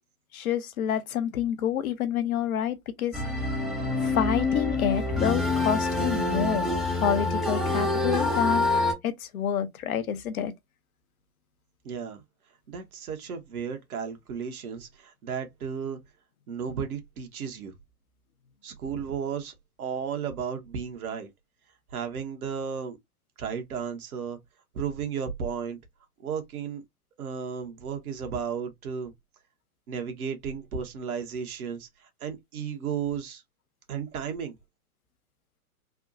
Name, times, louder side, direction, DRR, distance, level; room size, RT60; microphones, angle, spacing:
voice 1, 0.3-3.2 4.0-8.7 9.0-10.5, left 9 dB, 65° left, 0.8 m, -28 dB
sound 1, 3.1-8.9, left 2 dB, ahead, 0.5 m, -26 dB
voice 2, 11.8-12.2 12.7-16.0 16.5-17.7 18.6-21.3 21.9-23.0 23.4-24.4 24.7-25.8 26.2-26.8 27.2-29.1 29.9-31.9 32.2-33.4 33.9-34.5, right 6 dB, 65° right, 1.2 m, -34 dB
3.4 x 2.3 x 2.5 m
hypercardioid pair, 115°, 46 cm